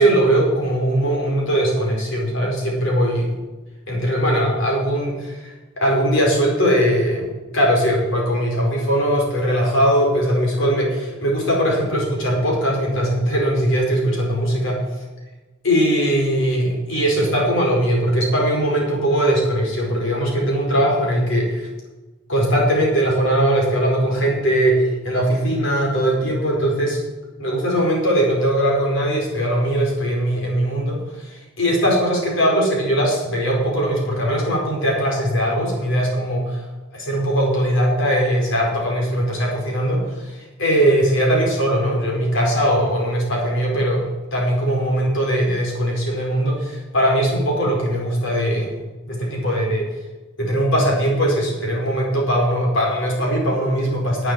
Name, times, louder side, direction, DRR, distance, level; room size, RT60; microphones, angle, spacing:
voice 1, 0.0-3.3 3.9-14.8 15.6-21.7 22.3-27.0 27.4-36.6 36.9-44.1 44.3-48.7 49.1-49.9 50.4-54.3, equal, 60° left, -2 dB, 5.0 m, -20 dB
11.5 x 8.6 x 7.8 m, 1.2 s
head